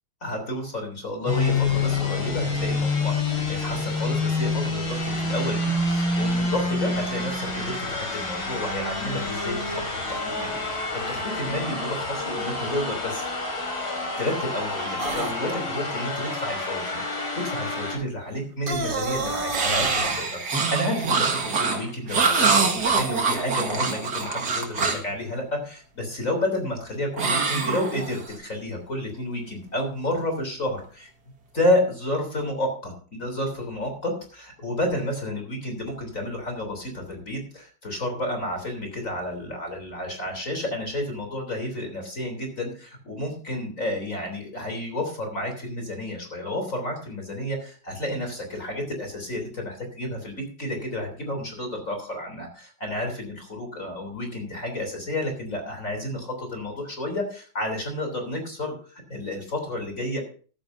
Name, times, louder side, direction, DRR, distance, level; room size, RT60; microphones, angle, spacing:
voice 1, 0.2-9.8 10.1-13.3 14.2-31.1 31.5-60.2, left 1 dB, 35° left, 4 dB, 3.8 m, -30 dB
sound 1, 1.3-18.0, left 3 dB, 70° left, 5.8 m, -28 dB
sound 2, 15.0-15.3 18.5-20.2, right 3 dB, 30° right, 1.4 m, -29 dB
sound 3, 19.5-25.1 27.2-28.3, right 4 dB, 50° right, 2.2 m, -24 dB
14.5 x 13.5 x 2.6 m, 0.39 s
omnidirectional pair, 2.4 m